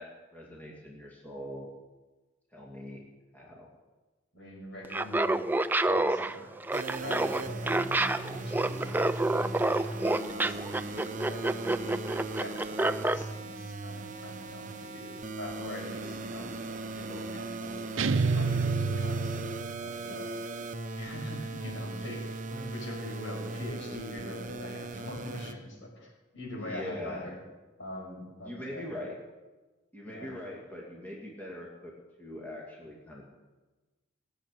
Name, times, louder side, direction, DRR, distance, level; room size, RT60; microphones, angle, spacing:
voice 1, 0.0-1.7 2.5-3.0 3.3-3.7 20.1-20.2 26.6-27.3 28.4-29.2 29.9-31.9 32.2-33.2, left 1 dB, 10° left, -4 dB, 2.5 m, -42 dB
voice 2, 4.3-5.5 5.8-6.6 7.0-19.4 19.8-20.3 21.0-27.4 27.8-28.9 30.0-30.4, left 1 dB, 70° left, -1 dB, 6.2 m, -43 dB
Laughter, 4.8-13.2, right 2 dB, 10° right, 0.4 m, -28 dB
sound 1, 6.7-25.5, right 3 dB, 40° right, 0.8 m, -38 dB
sound 2, 18.0-20.0, right 4 dB, 75° right, 0.6 m, -28 dB
19.5 x 7.8 x 9.4 m, 1.2 s
head